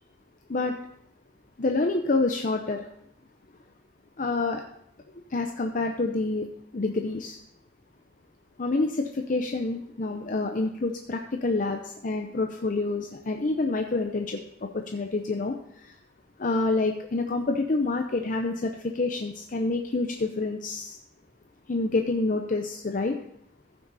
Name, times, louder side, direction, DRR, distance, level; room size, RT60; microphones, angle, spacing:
voice 1, 1.6-2.9 4.2-4.6 5.3-6.5 6.7-7.4 8.6-15.9 16.4-21.0 21.7-23.2, left 3 dB, 50° left, 4 dB, 0.7 m, -27 dB
15.0 x 6.1 x 4.1 m, 0.72 s
head